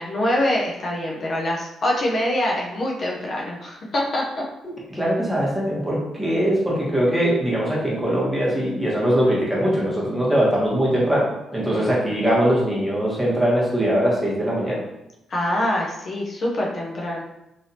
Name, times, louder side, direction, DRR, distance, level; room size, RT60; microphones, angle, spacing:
voice 1, 0.0-4.2 11.7-11.9 15.3-17.2, left 1 dB, 50° left, -2 dB, 0.6 m, -24 dB
voice 2, 4.9-14.8, equal, 5° right, -5 dB, 1.1 m, -21 dB
3.2 x 2.7 x 2.8 m, 0.88 s
cardioid pair, 90°, 0 cm